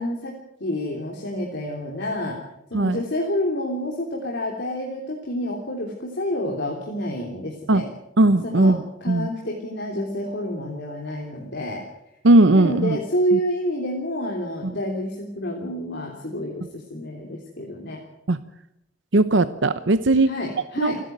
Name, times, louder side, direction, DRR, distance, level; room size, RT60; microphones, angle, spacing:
voice 1, 0.0-2.4 2.7-7.9 8.4-11.8 12.5-18.0 20.3-21.0, equal, 60° left, 0 dB, 3.3 m, -28 dB
voice 2, 8.2-9.3 12.2-13.0 13.3-13.4 14.6-14.7 18.3-18.4 19.1-20.3 20.8-21.0, right 2 dB, 70° right, 13 dB, 0.8 m, -18 dB
29.0 x 11.0 x 9.3 m, 0.84 s
head